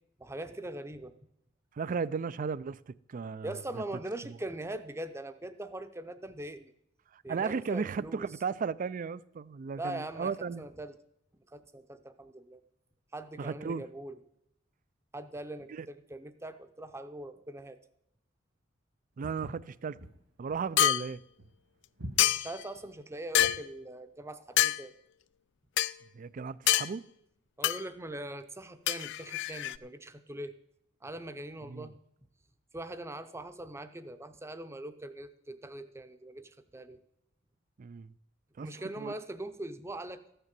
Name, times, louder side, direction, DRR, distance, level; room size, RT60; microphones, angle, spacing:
voice 1, 0.2-1.2 3.4-6.7 7.2-8.3 9.8-10.3 10.6-10.9 11.3-12.6 13.1-14.2 15.1-17.8 22.3-24.9 27.6-30.6 31.0-32.0 32.7-37.0 38.6-40.2, right 1 dB, 15° right, 0.7 m, -41 dB
voice 2, 1.7-3.8 7.1-10.6 13.4-13.8 15.7-15.9 19.2-20.0 20.4-21.2 26.1-27.0 31.7-31.9 37.8-38.1 38.6-38.7 39.0-39.1, right 5 dB, 45° right, 0.4 m, -35 dB
Walk footsteps, 19.2-23.7, equal, 75° right, 2.1 m, -46 dB
sound 1, 20.8-21.1 22.2-22.6 23.3-23.6 24.6-24.8 25.8-25.9 26.7-26.9 27.6-27.8 28.9-29.8, left 13 dB, 65° left, 0.3 m, -26 dB
13.5 x 6.6 x 7.5 m
head